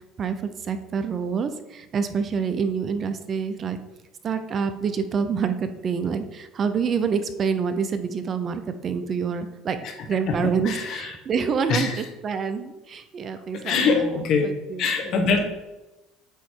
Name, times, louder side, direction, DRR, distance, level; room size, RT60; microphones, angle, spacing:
voice 1, 0.6-3.8 4.2-9.8 10.1-15.3, right 6 dB, 35° right, 9 dB, 0.6 m, -27 dB
voice 2, 10.3-11.1 11.7-12.0 13.6-14.5 14.8-15.4, left 5 dB, 55° left, 4 dB, 1.2 m, -23 dB
8.2 x 3.1 x 4.5 m, 1.0 s
cardioid pair, 125°, 0 cm